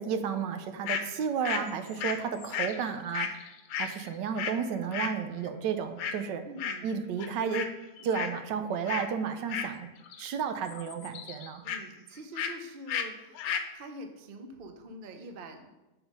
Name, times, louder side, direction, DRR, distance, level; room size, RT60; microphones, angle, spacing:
voice 1, 0.0-3.4 3.8-6.4 6.8-7.7 8.0-9.9 10.2-11.6, right 7 dB, 85° right, 8 dB, 1.3 m, -32 dB
sound 1, 0.9-1.0 1.4-4.6 4.9-5.2 6.0-6.2 6.6-6.9 7.2-7.7 8.0-8.4 8.9-9.1 9.5-10.3 10.5-11.8 12.3-12.6 12.9-13.1 13.3-13.7, left 7 dB, 85° left, 1.3 m, -34 dB
voice 2, 6.4-7.0 8.0-8.2 11.6-13.5 13.7-15.7, right 1 dB, 55° right, 6 dB, 0.6 m, -45 dB
7.0 x 3.9 x 5.2 m, 1.0 s
omnidirectional pair, 1.8 m